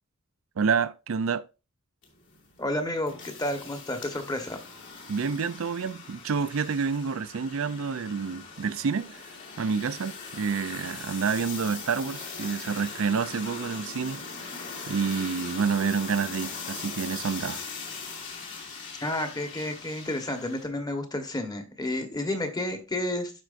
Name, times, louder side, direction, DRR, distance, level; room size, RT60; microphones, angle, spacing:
voice 1, 0.6-1.5 5.1-9.2 9.6-14.2 14.9-17.6, right 5 dB, 80° right, 0.5 m, -28 dB
sound 1, 2.0-20.7, left 5 dB, 65° left, 2.6 m, -40 dB
voice 2, 2.6-4.6 19.0-23.3, left 1 dB, 20° left, 1.2 m, -31 dB
12.0 x 4.6 x 2.5 m
head